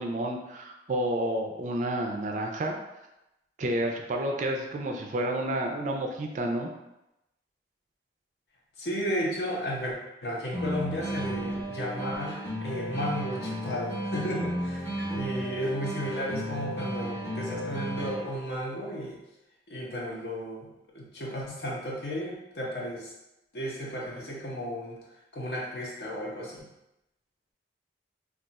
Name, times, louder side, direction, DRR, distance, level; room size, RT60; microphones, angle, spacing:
voice 1, 0.0-2.8 3.6-6.7, right 1 dB, 45° right, 2 dB, 0.4 m, -30 dB
voice 2, 8.8-19.1 19.7-20.7 20.9-23.1 23.5-25.0 25.3-26.6, equal, 60° left, -3 dB, 0.8 m, -34 dB
sound 1, 10.5-18.5, equal, 10° left, 0.7 m, -34 dB
2.4 x 2.3 x 3.9 m, 0.92 s
head